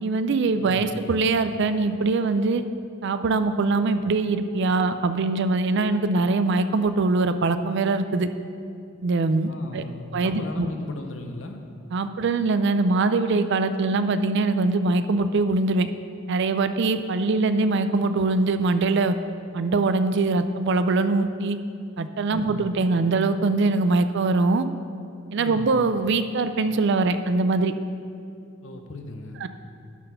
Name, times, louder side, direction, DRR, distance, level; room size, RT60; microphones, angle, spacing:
voice 1, 0.0-2.6 3.0-8.3 9.0-9.8 10.1-10.7 11.9-15.9 16.3-19.1 19.5-21.6 22.0-24.7 25.3-27.7 29.4-29.5, right 3 dB, 60° right, 11 dB, 0.4 m, -22 dB
voice 2, 9.5-11.6 22.3-22.7 25.4-25.8 28.6-29.5, left 2 dB, 70° left, 5 dB, 0.8 m, -37 dB
12.0 x 4.2 x 5.6 m, 2.5 s
head